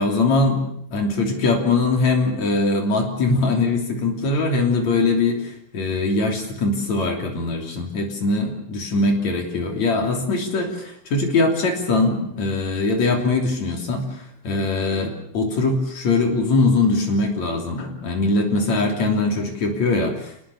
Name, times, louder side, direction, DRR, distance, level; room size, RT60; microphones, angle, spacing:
voice 1, 0.0-20.3, left 3 dB, 55° left, 3 dB, 4.3 m, -22 dB
27.5 x 20.0 x 7.1 m, 0.71 s
omnidirectional pair, 4.0 m